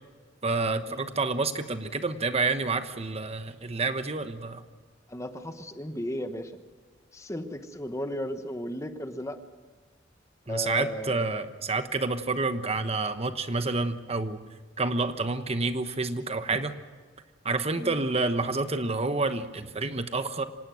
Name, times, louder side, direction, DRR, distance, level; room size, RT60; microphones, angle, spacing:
voice 1, 0.4-4.6 10.5-14.4 14.8-16.7 17.4-20.4, right 3 dB, 35° right, 9 dB, 1.1 m, -29 dB
voice 2, 5.1-6.5 7.1-9.4 10.5-11.5 17.8-18.0, left 1 dB, 15° left, 8 dB, 1.2 m, -35 dB
25.5 x 19.0 x 6.4 m, 1.4 s
head